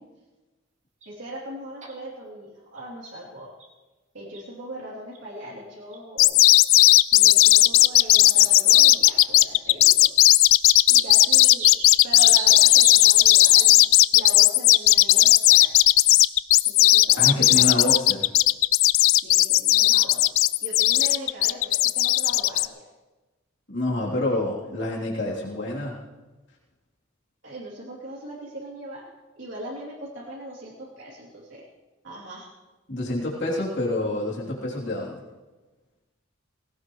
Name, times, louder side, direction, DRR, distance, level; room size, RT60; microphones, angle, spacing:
sound 1, 1.0-1.1 1.8-1.9 2.8-3.1 3.6-3.7 4.3-4.4 5.1-5.2 5.9-6.0 6.7-6.8 7.6-7.7 8.3-8.7 9.4-9.7 10.3-13.8 14.8-15.1 15.7-16.3 17.9-18.0, right 3 dB, 35° right, 2.1 m, -33 dB
voice 1, 1.0-3.5 4.1-6.4 7.1-10.1 10.9-11.7 12.0-13.8 14.1-15.9 16.6-17.9 19.2-22.9 27.4-29.1 29.3-31.7 32.0-32.5, right 1 dB, 65° right, -6 dB, 3.2 m, -39 dB
sound 2, 6.2-22.7, left 16 dB, 75° left, 0.4 m, -16 dB
voice 2, 17.2-18.2 23.7-26.0 32.9-35.2, left 1 dB, 55° left, -5 dB, 3.3 m, -27 dB
20.0 x 17.5 x 3.2 m, 1.2 s
head